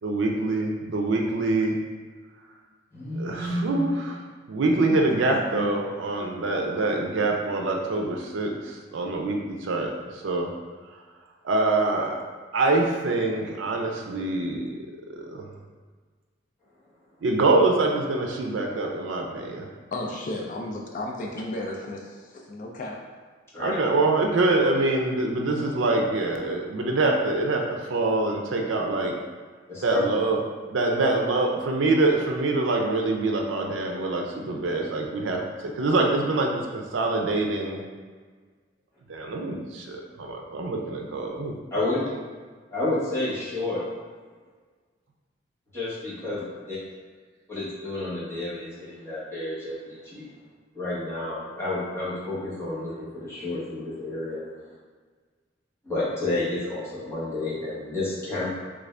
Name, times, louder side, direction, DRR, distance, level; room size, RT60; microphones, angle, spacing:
voice 1, 0.0-1.8 3.1-4.1 4.5-10.5 10.9-11.0 11.4-12.2 12.5-14.7 15.1-15.5 17.2-19.7 23.6-29.1 29.8-30.4 30.7-37.8 39.1-41.6, right 2 dB, 75° right, 1 dB, 0.5 m, -25 dB
voice 2, 2.9-3.8 4.6-4.7 5.5-5.7 23.5-23.8 29.7-30.0 31.0-31.1 41.7-42.0 42.7-43.8 45.7-46.8 47.5-50.3 50.7-54.7 55.8-58.5, left 2 dB, 15° left, -9 dB, 1.1 m, -30 dB
voice 3, 19.9-23.0, left 1 dB, 45° left, 0 dB, 0.3 m, -33 dB
3.4 x 2.5 x 3.2 m, 1.5 s
head